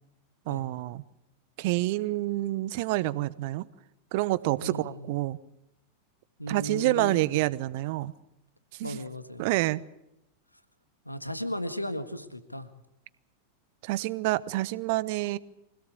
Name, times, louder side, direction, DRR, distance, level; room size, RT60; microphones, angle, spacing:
voice 1, 0.5-1.0 1.6-3.7 4.1-5.4 6.5-8.1 8.7-9.0 9.4-9.8 13.8-15.4, right 18 dB, 50° right, 1.0 m, -28 dB
voice 2, 4.6-5.1 6.4-7.3 8.8-9.4 11.0-12.7, equal, 85° left, 1.6 m, -36 dB
24.5 x 17.5 x 8.5 m
figure-of-eight pair, 90°, 0 cm